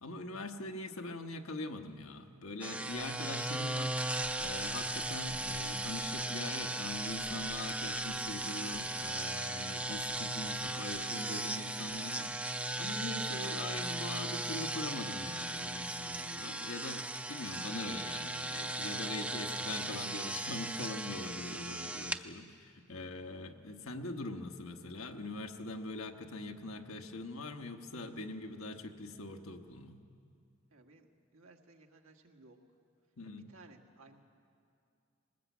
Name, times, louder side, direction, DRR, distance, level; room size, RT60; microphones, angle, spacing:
voice 1, 0.0-4.0 4.4-30.0 33.2-33.5, left 2 dB, 85° left, 5 dB, 1.2 m, -42 dB
sound 1, 2.6-22.2, right 2 dB, 5° right, 0.4 m, -37 dB
voice 2, 30.7-32.6 33.3-34.2, right 3 dB, 90° right, 2 dB, 1.7 m, -59 dB
20.0 x 18.5 x 8.3 m, 2.4 s
head